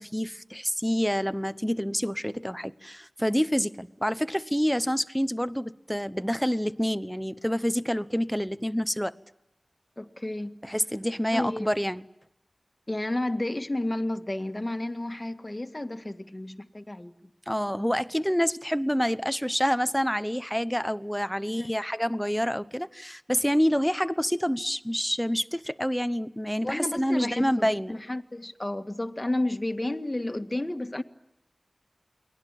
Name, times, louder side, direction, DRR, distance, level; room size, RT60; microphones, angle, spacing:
voice 1, 0.0-9.1 10.6-12.0 17.5-28.0, equal, 5° left, 0.9 m, -27 dB
voice 2, 10.0-10.6 11.3-11.7 12.9-17.3 21.6-21.7 26.6-31.0, left 1 dB, 25° left, 1.8 m, -31 dB
29.5 x 21.5 x 9.1 m
wide cardioid pair, 50°, 0 cm